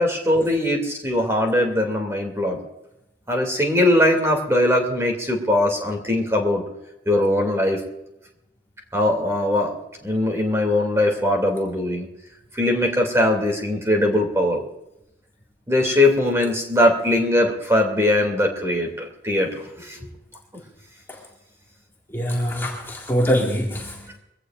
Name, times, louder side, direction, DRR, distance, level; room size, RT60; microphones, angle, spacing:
voice 1, 0.0-2.6 3.3-6.6 7.1-7.8 8.9-9.7 10.0-12.1 12.5-14.7 15.7-19.5 19.8-20.1, left 1 dB, 15° right, 1 dB, 2.6 m, -20 dB
voice 2, 22.1-24.2, equal, 15° left, -3 dB, 2.1 m, -24 dB
23.0 x 16.5 x 2.5 m, 0.87 s
head